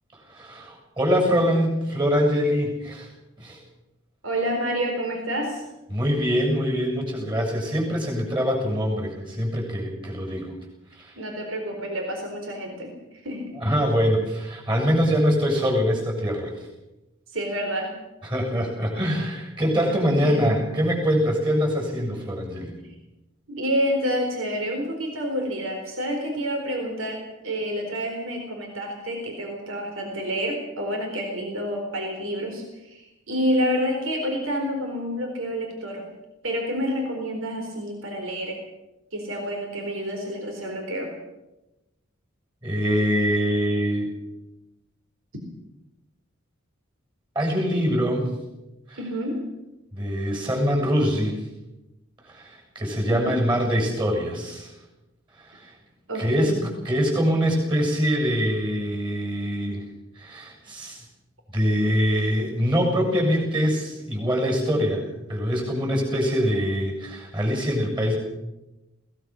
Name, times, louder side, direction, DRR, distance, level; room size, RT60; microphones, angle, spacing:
voice 1, 0.3-3.1 3.4-3.6 5.9-10.5 10.9-11.2 13.6-16.5 18.2-22.7 42.6-44.1 47.3-48.3 48.9-49.0 49.9-51.5 52.2-54.7 55.3-55.8 56.2-59.8 60.2-61.0 61.5-65.0 65.3-68.2, equal, 25° right, 1 dB, 7.4 m, -24 dB
voice 2, 4.2-5.6 11.2-13.5 17.3-17.9 20.1-20.7 23.5-36.1 36.4-38.6 39.1-41.1 49.0-49.4 53.1-53.4 56.1-56.6, equal, 80° right, 3 dB, 4.2 m, -28 dB
21.5 x 19.0 x 6.4 m, 0.98 s
head